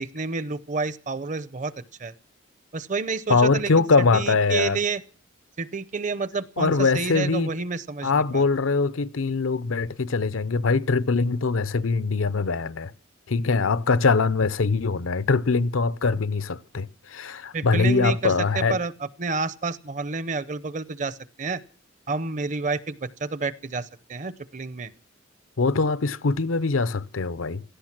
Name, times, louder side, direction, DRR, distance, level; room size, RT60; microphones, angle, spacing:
voice 1, 0.0-1.7 2.0-2.1 2.7-3.8 4.1-5.0 5.6-8.4 17.5-18.9 19.2-21.6 22.1-24.9, right 4 dB, 40° right, 0.7 m, -29 dB
voice 2, 3.3-4.8 6.6-7.5 8.0-12.9 13.3-18.8 25.6-27.6, left 4 dB, 90° left, 0.7 m, -22 dB
17.0 x 14.0 x 6.0 m
head